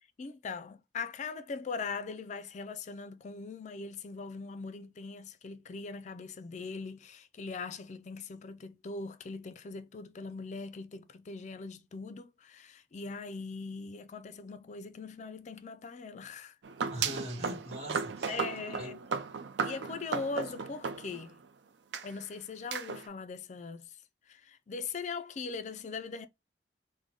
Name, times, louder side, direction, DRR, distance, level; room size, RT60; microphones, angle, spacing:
voice 1, 0.2-16.6 18.3-19.0 19.6-21.4 22.0-24.0 24.3-26.3, left 4 dB, 40° left, 0.4 m, -41 dB
sound 1, 16.6-21.5 21.9-22.1 22.7-23.1, right 6 dB, 80° right, 0.5 m, -35 dB
voice 2, 16.9-19.0, equal, 40° right, 1.4 m, -42 dB
3.8 x 2.1 x 3.5 m
head